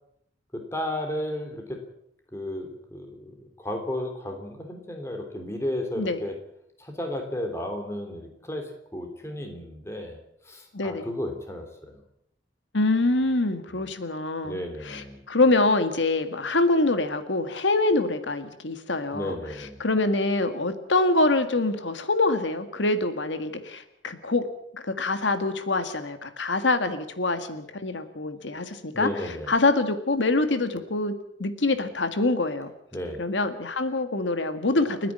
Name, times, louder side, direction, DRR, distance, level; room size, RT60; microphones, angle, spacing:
voice 1, 0.5-1.8 2.3-6.4 6.8-10.2 10.4-12.0 13.8-13.9 14.4-15.2 19.1-19.8 28.9-29.5 32.9-33.2, left 1 dB, 15° left, 4 dB, 3.3 m, -33 dB
voice 2, 10.7-11.1 12.7-24.5 24.7-31.1 31.4-32.7 33.2-35.1, left 2 dB, 85° left, 9 dB, 1.8 m, -25 dB
30.0 x 10.0 x 8.7 m, 0.78 s
head